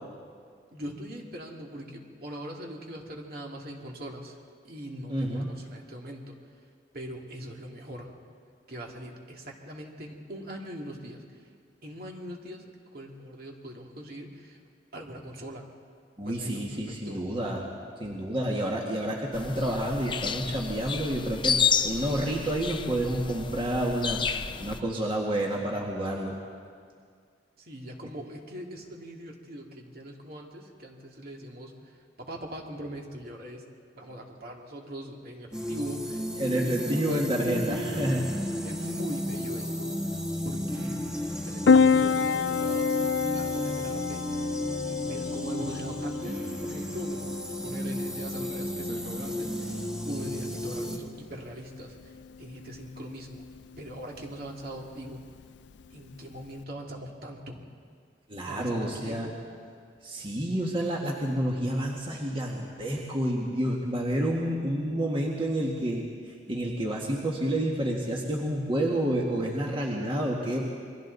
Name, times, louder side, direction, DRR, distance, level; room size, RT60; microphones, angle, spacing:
voice 1, 0.7-4.4 4.6-6.3 6.9-8.1 8.7-11.5 11.8-14.6 14.9-15.7 16.2-17.2 27.6-33.7 33.9-38.1 38.6-41.1 41.4-43.1 43.3-44.6 44.8-47.3 47.6-53.4 53.8-55.2 55.9-57.6 58.5-59.4, equal, 55° right, 0 dB, 2.6 m, -41 dB
voice 2, 5.1-5.5 16.2-17.7 18.0-24.2 24.6-26.4 36.4-38.2 58.3-59.3 60.0-70.7, right 1 dB, 30° right, -2 dB, 1.8 m, -29 dB
sound 1, 19.3-24.8, left 7 dB, 30° left, 0.7 m, -30 dB
sound 2, 35.5-51.0, equal, 5° right, 1.7 m, -33 dB
Piano, 41.7-56.6, left 5 dB, 75° left, 0.4 m, -30 dB
28.5 x 22.5 x 4.1 m, 2.1 s
head